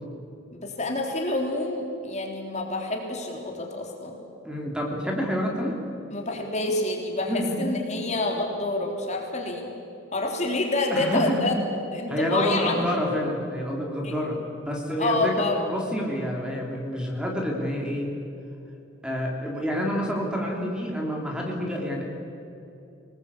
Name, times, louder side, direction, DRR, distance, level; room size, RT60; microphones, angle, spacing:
voice 1, 0.5-4.2 6.1-9.7 10.1-11.6 11.9-12.9 14.0-14.1 15.0-15.6, left 2 dB, 35° left, 1 dB, 3.6 m, -28 dB
voice 2, 4.4-5.8 7.3-7.6 10.9-11.6 12.1-14.4 14.7-15.3 15.6-18.1 19.0-22.0, equal, 5° right, -1 dB, 3.2 m, -28 dB
25.0 x 20.0 x 8.5 m, 2.7 s
head